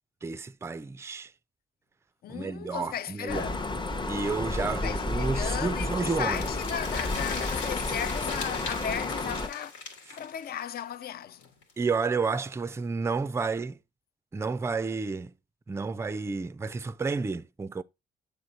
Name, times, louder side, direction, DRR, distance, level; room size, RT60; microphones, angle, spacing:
voice 1, 0.2-1.3 2.3-3.5 4.1-6.5 11.8-13.8 14.3-15.3 15.7-17.8, right 4 dB, 15° right, 0.3 m, -31 dB
voice 2, 2.2-3.7 4.6-9.7 10.1-11.5, left 9 dB, 50° left, 0.4 m, -36 dB
sound 1, 3.3-9.5, left 2 dB, 25° left, 0.7 m, -31 dB
sound 2, 6.0-11.7 12.0-12.1 12.4-12.5, left 4 dB, 90° left, 1.9 m, -39 dB
7.5 x 3.5 x 4.1 m
cardioid pair, 90°, 20 cm